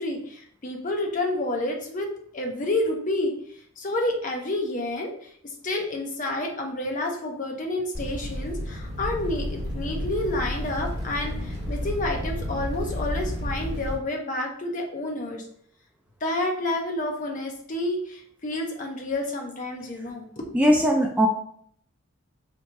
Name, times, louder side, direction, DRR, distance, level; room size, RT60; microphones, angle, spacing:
voice 1, 0.0-2.1 2.3-3.3 3.8-5.3 5.6-15.4 16.2-20.4, left 1 dB, 35° left, 2 dB, 0.6 m, -29 dB
sound 1, 7.9-13.9, equal, 30° right, 1.6 m, -31 dB
voice 2, 20.5-21.3, equal, 5° right, 0 dB, 0.3 m, -19 dB
2.9 x 2.7 x 4.4 m, 0.63 s
head